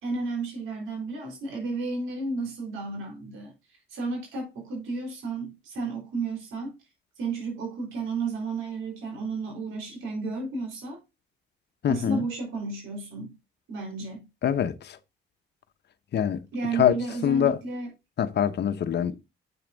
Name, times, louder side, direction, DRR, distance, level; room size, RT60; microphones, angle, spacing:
voice 1, 0.0-3.5 3.9-6.7 7.2-11.0 11.9-13.3 13.7-14.3 16.5-17.9, right 3 dB, 85° right, 4.1 m, -32 dB
voice 2, 11.8-12.2 14.4-15.0 16.1-16.4 16.7-16.9 17.2-17.6 18.2-19.1, left 9 dB, 60° left, 0.9 m, -24 dB
8.0 x 5.8 x 4.0 m
cardioid pair, 90°, 20 cm